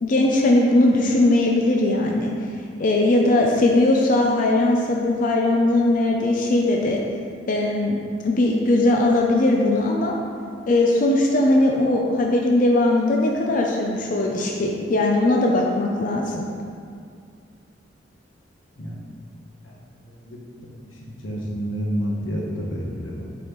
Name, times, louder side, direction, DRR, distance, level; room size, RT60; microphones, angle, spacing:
voice 1, 0.0-2.3 2.8-7.0 7.5-10.1 10.7-16.5, left 2 dB, 45° left, 0 dB, 0.4 m, -19 dB
voice 2, 18.8-19.2 19.6-19.7 20.0-23.2, equal, 90° left, -2 dB, 1.1 m, -30 dB
8.1 x 4.1 x 3.0 m, 2.2 s
head